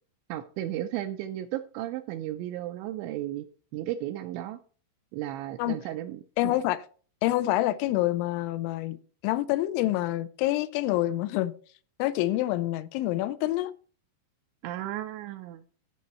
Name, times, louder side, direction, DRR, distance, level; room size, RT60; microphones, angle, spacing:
voice 1, 0.3-3.5 3.7-4.6 5.1-6.5 14.6-15.6, right 13 dB, 80° right, 2.7 m, -34 dB
voice 2, 6.4-6.9 7.2-9.0 9.2-11.5 12.0-13.7, left 16 dB, 85° left, 2.9 m, -27 dB
15.5 x 5.6 x 4.2 m
omnidirectional pair, 5.6 m